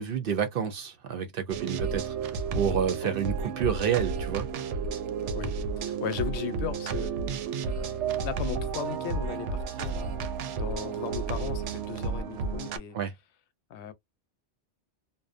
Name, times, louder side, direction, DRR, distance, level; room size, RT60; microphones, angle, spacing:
voice 1, 0.0-4.5 12.9-13.1, right 8 dB, 60° right, 0.7 m, -29 dB
sound 1, 1.5-12.8, right 5 dB, 90° right, 0.9 m, -32 dB
voice 2, 5.3-7.1 7.7-13.0 13.7-13.9, left 9 dB, 75° left, 0.8 m, -37 dB
2.5 x 2.0 x 2.4 m
omnidirectional pair, 1.2 m